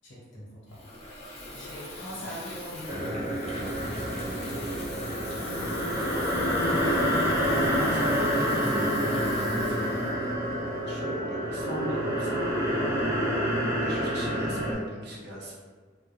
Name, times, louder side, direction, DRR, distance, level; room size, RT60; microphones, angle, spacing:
voice 1, 0.0-1.1 1.5-3.4, equal, 70° left, -4 dB, 0.9 m, -42 dB
Water tap faucet / Fill (with liquid), 0.7-10.9, left 1 dB, 35° left, 0.6 m, -41 dB
sound 1, 2.9-14.7, equal, 15° right, 0.4 m, -28 dB
voice 2, 5.4-7.0 7.5-10.2 10.8-12.8 13.1-15.5, equal, 60° right, -4 dB, 0.6 m, -39 dB
2.2 x 2.1 x 3.0 m, 1.5 s
head